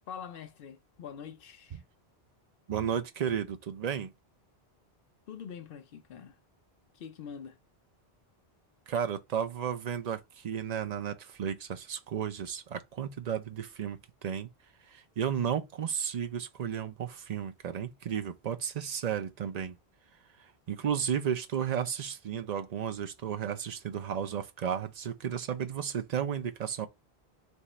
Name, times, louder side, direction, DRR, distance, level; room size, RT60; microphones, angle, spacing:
voice 1, 0.1-1.8 5.3-6.4 6.9-7.6, left 7 dB, 65° left, 0.7 m, -44 dB
voice 2, 2.7-4.1 8.9-14.5 14.9-19.8 20.4-26.9, right 8 dB, 50° right, 0.5 m, -33 dB
3.6 x 2.9 x 4.2 m
omnidirectional pair, 1.1 m